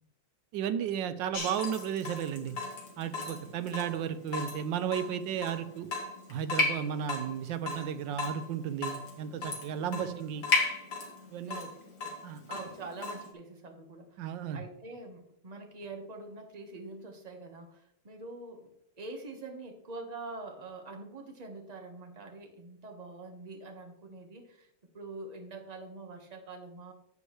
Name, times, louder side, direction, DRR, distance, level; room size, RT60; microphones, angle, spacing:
voice 1, 0.5-2.6 3.0-5.9 6.3-10.4 11.3-11.6 12.2-12.4 14.2-14.6, right 9 dB, 85° right, 12 dB, 1.3 m, -34 dB
Water tap faucet / Drip, 1.3-13.3, left 3 dB, 65° left, 2.4 m, -35 dB
voice 2, 9.9-10.2 11.4-12.2 12.5-24.7 24.9-26.9, right 3 dB, 25° right, 3 dB, 1.2 m, -45 dB
10.5 x 8.0 x 3.2 m, 0.73 s
omnidirectional pair, 2.0 m